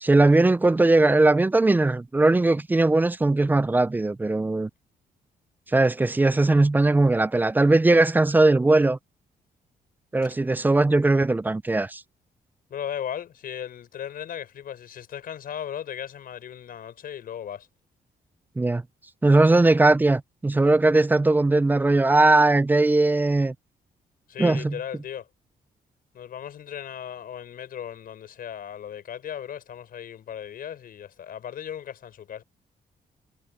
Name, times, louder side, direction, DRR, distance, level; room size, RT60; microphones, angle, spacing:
voice 1, 0.0-4.7 5.7-9.0 10.1-12.0 18.6-18.8 19.2-23.5 24.4-24.8, right 2 dB, 10° right, 0.3 m, -19 dB
voice 2, 12.7-17.7 24.3-25.3 26.1-32.4, left 9 dB, 65° left, 5.4 m, -36 dB
cardioid pair, 140°, 16 cm